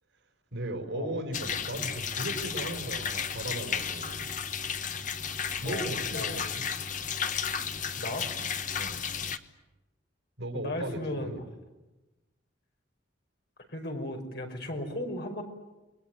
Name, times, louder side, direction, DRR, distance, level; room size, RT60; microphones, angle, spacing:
voice 1, 0.5-4.3 5.6-6.7 8.8-9.0 10.4-11.4, right 1 dB, 80° right, 4 dB, 5.1 m, -37 dB
sound 1, 1.3-9.4, left 7 dB, 45° left, 1.2 m, -33 dB
voice 2, 5.6-6.4 8.0-8.3 10.5-11.4 13.7-15.4, left 1 dB, 60° left, 3 dB, 5.4 m, -35 dB
29.5 x 22.0 x 9.3 m, 1.1 s
head